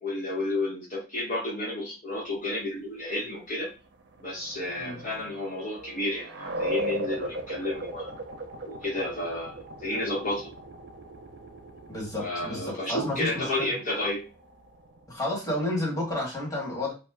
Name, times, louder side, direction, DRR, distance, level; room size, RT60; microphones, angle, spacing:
voice 1, 0.0-3.7 4.2-8.1 8.6-10.5 12.2-14.2, left 1 dB, 45° left, -6 dB, 0.9 m, -31 dB
sound 1, 3.9-15.3, right 1 dB, 85° right, 0.5 m, -38 dB
voice 2, 11.9-13.7 15.1-16.9, left 1 dB, 20° left, -4 dB, 1.4 m, -31 dB
2.9 x 2.0 x 3.4 m, 0.31 s
head